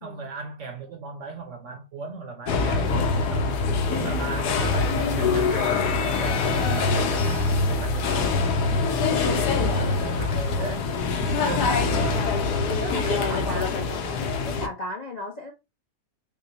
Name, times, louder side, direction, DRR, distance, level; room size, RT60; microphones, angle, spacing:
voice 1, 0.0-3.5 3.9-8.5 9.1-10.9 11.3-13.7, right 4 dB, 65° right, 0.8 m, -37 dB
sound 1, 2.5-14.7, left 4 dB, 85° left, 1.2 m, -24 dB
voice 2, 11.4-11.9 12.7-14.2 14.4-15.5, left 1 dB, 45° left, 0.5 m, -35 dB
3.7 x 2.1 x 3.8 m
omnidirectional pair, 1.7 m